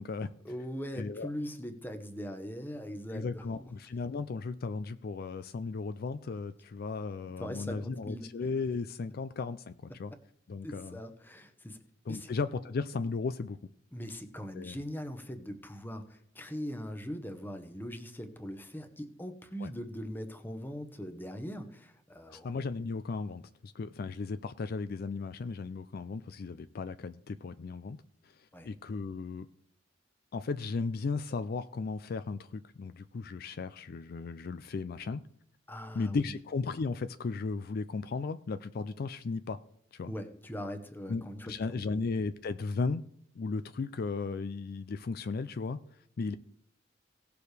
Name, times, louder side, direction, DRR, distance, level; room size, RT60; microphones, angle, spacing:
voice 1, 0.4-3.7 7.4-8.3 10.6-11.8 12.1-12.3 13.9-22.5 28.5-28.7 35.7-36.3 40.0-41.6 41.9-42.0, equal, 10° left, 7 dB, 1.0 m, -41 dB
voice 2, 1.0-1.3 3.1-10.1 10.5-11.0 12.1-13.6 14.5-14.8 19.6-19.7 22.3-28.0 28.2-29.5 30.3-35.2 35.9-39.6 39.9-40.1 41.1-43.0 43.4-45.8 46.2-46.4, left 4 dB, 55° left, 12 dB, 0.4 m, -35 dB
17.5 x 6.9 x 3.3 m, 0.66 s
head